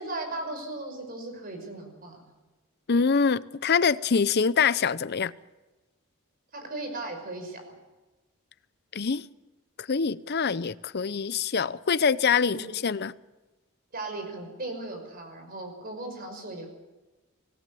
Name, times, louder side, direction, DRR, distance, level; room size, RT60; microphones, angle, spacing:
voice 1, 0.0-2.3 6.5-7.8 12.5-12.7 13.9-16.7, right 2 dB, 45° right, 5.7 m, -37 dB
voice 2, 2.9-5.3 8.9-9.2 9.8-13.1, left 5 dB, 50° left, 0.7 m, -25 dB
25.0 x 17.5 x 7.0 m
head